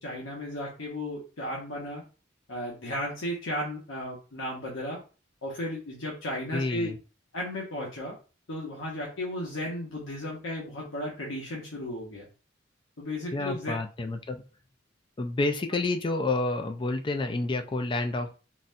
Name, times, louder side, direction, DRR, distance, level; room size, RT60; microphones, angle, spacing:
voice 1, 0.0-2.0 2.5-5.0 5.4-6.9 7.3-8.1 8.5-12.3 13.0-13.7, left 1 dB, 85° left, -3 dB, 0.9 m, -34 dB
voice 2, 6.5-7.0 13.3-14.4 15.2-18.4, left 2 dB, 25° left, 6 dB, 0.3 m, -29 dB
3.9 x 2.1 x 2.5 m, 0.34 s
head